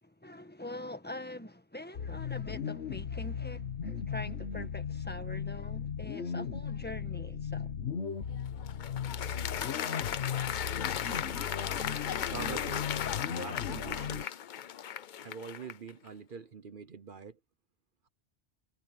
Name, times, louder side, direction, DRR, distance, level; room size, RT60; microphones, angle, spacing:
voice 1, 0.0-7.7, left 1 dB, 10° left, 1.4 m, -44 dB
sound 1, 1.9-14.2, left 7 dB, 80° left, 1.5 m, -37 dB
Applause, 8.3-15.9, left 9 dB, 55° left, 0.6 m, -36 dB
voice 2, 12.2-12.9 13.3-14.4 15.2-17.4, right 6 dB, 50° right, 1.0 m, -44 dB
omnidirectional pair, 1.1 m